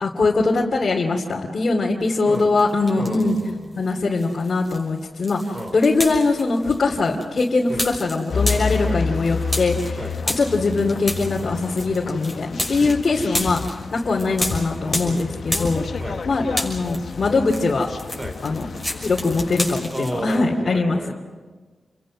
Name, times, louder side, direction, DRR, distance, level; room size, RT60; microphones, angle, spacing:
voice 1, 0.0-3.4 3.8-15.8 16.2-17.9 18.4-18.7 19.0-21.1, left 3 dB, 55° left, -2 dB, 2.4 m, -22 dB
sound 1, 2.3-3.5 3.8-16.2 16.5-20.4, left 1 dB, 5° right, 6.1 m, -31 dB
voice 2, 3.0-3.8 5.5-5.8 7.7-7.9 8.8-9.0 10.0-10.1 12.8-13.0 15.0-15.2 16.0-16.2 18.2-18.4 19.9-21.1, right 1 dB, 30° right, 6 dB, 4.1 m, -32 dB
sound 2, 8.3-19.8, left 5 dB, 70° left, 0.8 m, -30 dB
29.0 x 23.0 x 6.2 m, 1.4 s
wide cardioid pair, 105°, 0 cm